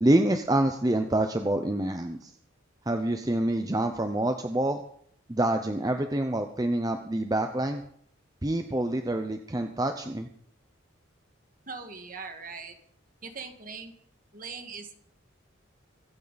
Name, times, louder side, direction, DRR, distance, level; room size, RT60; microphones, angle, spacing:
voice 1, 0.0-2.3 2.9-4.8 5.3-7.8 8.4-10.3, right 1 dB, 20° right, 6 dB, 0.7 m, -26 dB
voice 2, 11.7-12.7 13.2-13.9 14.3-14.9, right 4 dB, 45° right, 6 dB, 1.7 m, -40 dB
23.5 x 9.0 x 4.1 m, 0.65 s
head